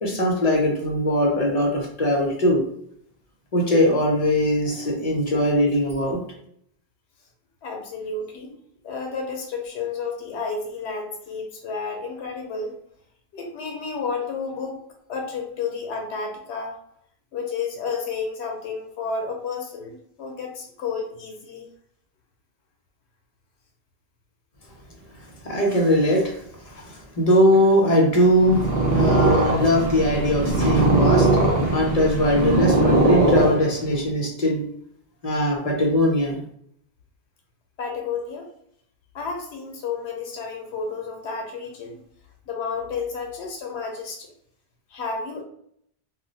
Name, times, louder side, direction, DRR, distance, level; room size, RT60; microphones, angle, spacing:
voice 1, 0.0-2.6 3.5-6.2 25.4-34.6 35.2-36.4, equal, 40° left, -1 dB, 0.7 m, -21 dB
voice 2, 7.6-8.6 8.8-12.7 13.3-14.8 15.1-16.7 17.3-21.7 37.8-38.5 39.1-42.0 42.5-44.3 44.9-45.4, left 5 dB, 85° left, 2 dB, 0.9 m, -31 dB
Purr, 28.3-34.0, right 2 dB, 45° right, 0.7 m, -20 dB
2.4 x 2.0 x 3.9 m, 0.68 s
omnidirectional pair, 1.1 m